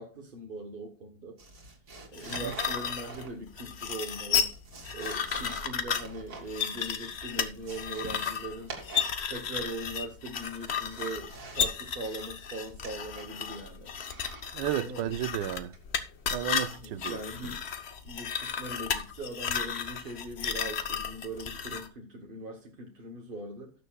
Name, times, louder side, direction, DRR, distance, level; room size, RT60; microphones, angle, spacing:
voice 1, 0.0-1.4 2.1-4.5 4.9-8.7 9.3-13.9 14.8-15.1 16.7-17.6 18.0-23.7, right 1 dB, 35° right, 1.0 m, -40 dB
sound 1, 1.4-3.6 4.3-6.5 6.9-7.0 7.2-9.2 9.5-9.9 10.4-11.7 12.0-13.4 13.9-14.5 15.7-16.1 17.4-17.7 18.2-18.5, right 3 dB, 60° right, 2.5 m, -46 dB
sound 2, 2.1-21.9, left 7 dB, 45° left, 0.9 m, -34 dB
voice 2, 14.5-15.7 16.3-17.2, right 12 dB, 90° right, 1.3 m, -33 dB
18.0 x 6.8 x 2.3 m
omnidirectional pair, 1.9 m